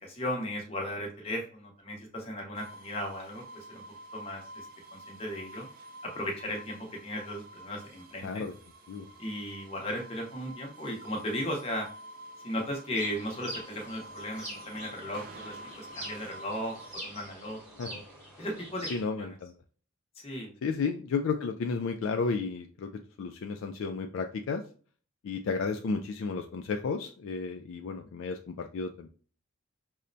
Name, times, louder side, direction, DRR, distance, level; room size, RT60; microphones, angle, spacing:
voice 1, 0.0-3.8 4.1-4.7 4.9-5.7 6.0-8.5 9.2-11.9 12.4-17.6 17.9-18.0 18.4-18.9 19.2-19.3 20.2-20.5, left 1 dB, 25° left, 0 dB, 0.8 m, -36 dB
sound 1, 2.5-17.0, right 1 dB, 40° right, 0.4 m, -48 dB
voice 2, 8.2-8.5 8.9-9.1 17.8-17.9 18.9-19.5 20.6-22.9 23.2-24.6 25.2-29.1, left 4 dB, 60° left, 5 dB, 0.3 m, -32 dB
sound 2, 12.9-19.0, right 1 dB, 5° right, 1.1 m, -44 dB
5.4 x 2.1 x 2.6 m, 0.41 s
head